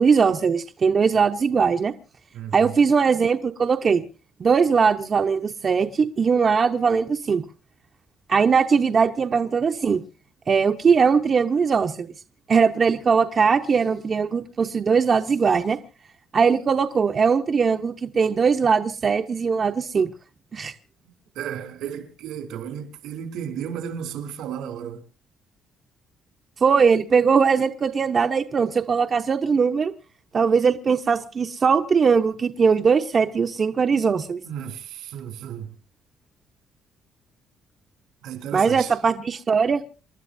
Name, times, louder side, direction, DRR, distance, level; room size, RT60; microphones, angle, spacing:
voice 1, 0.0-1.9 2.5-4.0 4.4-7.4 8.3-10.0 10.5-12.1 12.5-15.8 16.3-20.1 20.5-20.8 26.6-29.9 30.3-34.4 38.5-39.8, right 5 dB, 35° right, 0.8 m, -20 dB
voice 2, 2.3-2.7 21.3-25.0 34.4-35.7 38.2-39.0, right 8 dB, 90° right, 3.2 m, -34 dB
28.5 x 12.0 x 2.6 m
cardioid pair, 145°, 0 cm